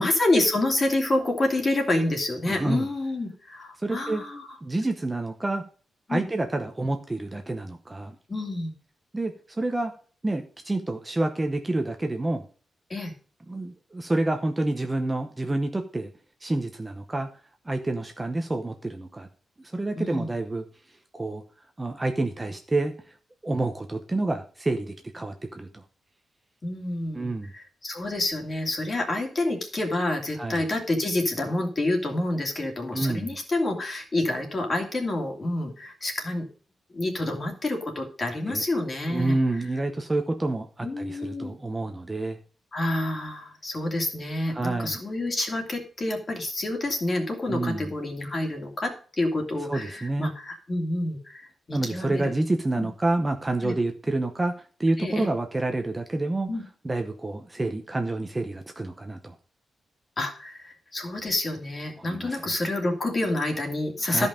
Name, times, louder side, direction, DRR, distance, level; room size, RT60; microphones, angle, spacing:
voice 1, 0.0-4.6 6.1-6.2 8.3-8.7 12.9-13.1 19.9-20.3 26.6-36.5 36.9-39.4 40.8-41.5 42.7-52.3 52.8-52.9 53.6-53.7 55.0-55.3 56.5-56.6 60.2-64.3, left 2 dB, 25° left, 3 dB, 2.5 m, -28 dB
voice 2, 2.5-2.9 3.8-4.2 4.6-5.6 6.1-8.2 9.1-9.9 10.2-12.4 13.5-16.1 16.4-17.3 17.7-19.3 19.6-20.6 21.1-21.4 21.8-23.1 23.4-25.8 27.1-27.5 30.4-30.6 32.9-33.3 38.5-38.6 39.1-42.4 44.5-45.0 47.5-47.8 49.7-50.3 51.7-56.5 56.8-59.3 62.0-62.4 64.1-64.3, right 2 dB, 15° right, 5 dB, 0.8 m, -28 dB
13.5 x 5.4 x 5.1 m, 0.41 s
wide cardioid pair, 170°, 0 cm